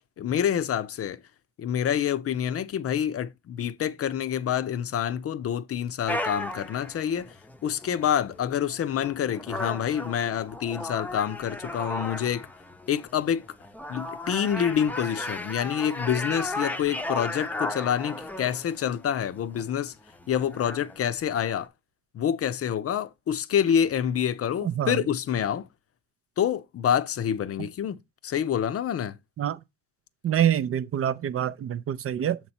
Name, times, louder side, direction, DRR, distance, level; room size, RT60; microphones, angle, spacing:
voice 1, 0.2-1.2 1.6-7.4 7.6-12.5 12.9-13.5 13.9-19.9 20.3-21.7 22.1-25.7 26.4-28.0 28.2-29.2, left 9 dB, 50° left, 0.5 m, -27 dB
sound 1, 6.1-21.7, left 1 dB, 5° left, 0.6 m, -36 dB
voice 2, 24.6-25.0 27.6-27.7 29.4-29.6 30.2-32.4, right 10 dB, 50° right, 0.5 m, -26 dB
7.2 x 2.9 x 5.4 m
cardioid pair, 90°, 30 cm